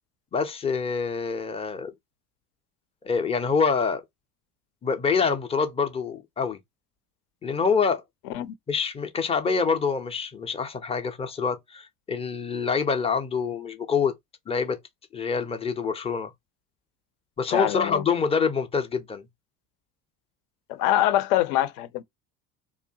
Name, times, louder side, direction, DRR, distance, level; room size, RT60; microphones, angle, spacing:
voice 1, 0.3-1.9 3.0-4.0 4.8-6.6 7.4-8.0 8.7-14.2 14.5-14.8 15.1-16.3 17.4-19.3, left 5 dB, 15° left, 0.4 m, -26 dB
voice 2, 17.5-18.0 20.7-22.0, left 13 dB, 65° left, 0.6 m, -24 dB
2.7 x 2.2 x 2.5 m
hypercardioid pair, 65°, 50 cm